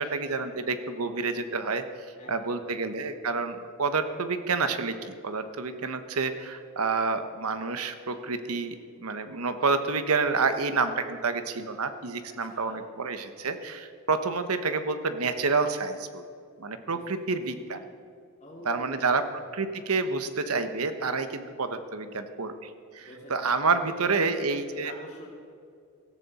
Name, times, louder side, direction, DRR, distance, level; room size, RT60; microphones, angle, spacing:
voice 1, 0.0-1.8 2.3-16.2 16.6-17.8 18.6-19.2 19.5-24.9, right 4 dB, 80° right, 9 dB, 1.1 m, -29 dB
voice 2, 2.2-2.9 12.3-12.8 16.8-17.0 17.6-17.7 18.4-19.3 23.0-23.3 24.0-24.5 24.8-25.3, left 1 dB, 35° left, -6 dB, 2.7 m, -47 dB
16.5 x 14.0 x 4.2 m, 2.4 s
head